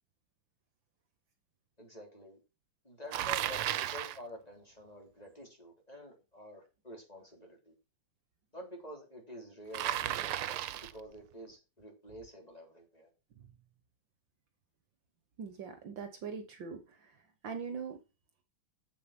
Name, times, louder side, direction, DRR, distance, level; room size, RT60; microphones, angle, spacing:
voice 1, 1.8-2.4 2.8-7.7 8.5-13.1, equal, 15° left, 1 dB, 3.9 m, -49 dB
Bicycle, 3.1-4.2 9.7-11.0, right 13 dB, 85° right, 1.6 m, -34 dB
voice 2, 15.4-17.2 17.4-18.0, right 6 dB, 65° right, 8 dB, 1.9 m, -42 dB
7.9 x 7.5 x 6.0 m, 0.29 s
omnidirectional pair, 2.4 m